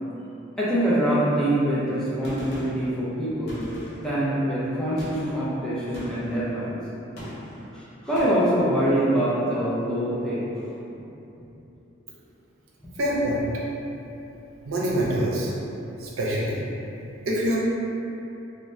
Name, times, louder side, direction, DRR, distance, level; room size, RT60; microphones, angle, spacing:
voice 1, 0.6-3.6 4.0-6.8 7.7-10.7, right 1 dB, 5° left, -10 dB, 0.4 m, -24 dB
Gunshot gunfire, 2.2-2.9 3.5-4.2 5.0-5.4 5.9-6.4 7.2-7.7 8.2-8.6, equal, 55° left, 0.7 m, -39 dB
voice 2, 13.0-13.5 14.6-15.5 16.0-16.6 17.3-17.6, equal, 85° right, -5 dB, 0.6 m, -25 dB
2.7 x 2.1 x 3.2 m, 3.0 s
head